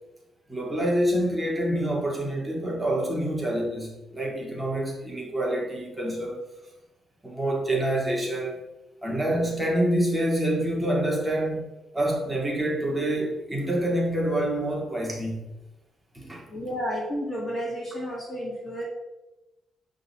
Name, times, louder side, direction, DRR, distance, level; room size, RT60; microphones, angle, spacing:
voice 1, 0.5-6.4 7.2-8.6 9.0-11.6 11.9-15.5 16.1-16.4, right 1 dB, 5° right, -2 dB, 2.0 m, -27 dB
voice 2, 16.5-18.8, equal, 15° left, 0 dB, 1.9 m, -31 dB
11.0 x 4.0 x 7.3 m, 1.0 s
cardioid pair, 160°, 0 cm